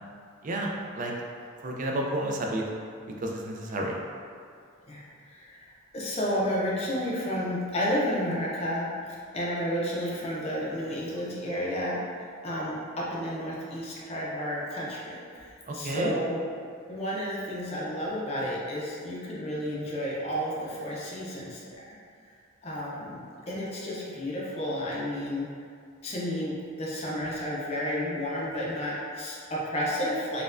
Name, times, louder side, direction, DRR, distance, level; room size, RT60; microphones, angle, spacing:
voice 1, 0.4-1.1 1.6-2.6 3.2-3.9 15.7-16.2, right 1 dB, 40° right, -1 dB, 0.3 m, -31 dB
voice 2, 4.9-5.6 5.9-12.0 12.4-16.4 16.9-21.8 22.6-25.5 26.0-30.4, equal, 30° left, -6 dB, 0.5 m, -31 dB
4.2 x 2.2 x 2.5 m, 2.3 s
head